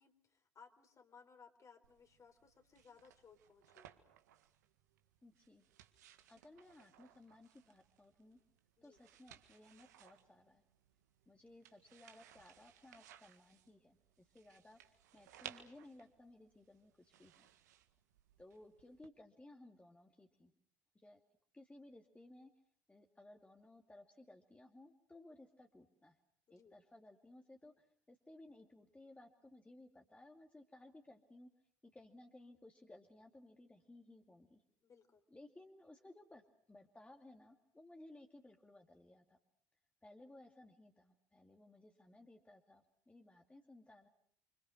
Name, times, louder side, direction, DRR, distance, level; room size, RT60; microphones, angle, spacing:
voice 1, 0.0-4.0 8.8-9.0 26.5-26.8 34.8-35.2, left 5 dB, 35° left, 7 dB, 3.8 m, -63 dB
sound 1, 1.8-19.1, right 11 dB, 80° right, 1.8 m, -61 dB
voice 2, 5.2-5.7 6.3-8.4 8.8-10.6 11.3-17.5 18.4-20.5 20.9-21.2 21.5-22.5 22.9-26.2 26.5-31.5 31.8-34.6 35.3-39.4 40.0-44.1, left 1 dB, 15° left, 3 dB, 2.5 m, -60 dB
30.0 x 25.5 x 6.4 m, 0.64 s
hypercardioid pair, 60°, 9 cm